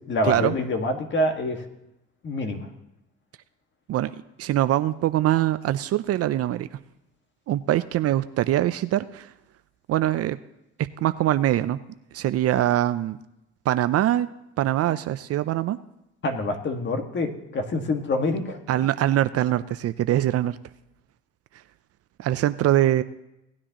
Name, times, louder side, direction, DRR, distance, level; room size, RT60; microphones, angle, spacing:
voice 1, 0.1-1.7 2.2-2.7 16.2-18.6, left 2 dB, 40° left, 5 dB, 1.7 m, -26 dB
voice 2, 4.4-6.7 7.5-9.3 9.9-10.4 10.8-11.8 12.1-13.2 13.7-14.3 14.6-15.8 18.7-20.6 22.2-23.0, right 13 dB, 50° right, 13 dB, 0.5 m, -23 dB
18.0 x 9.8 x 2.9 m, 0.88 s
cardioid pair, 95°, 30 cm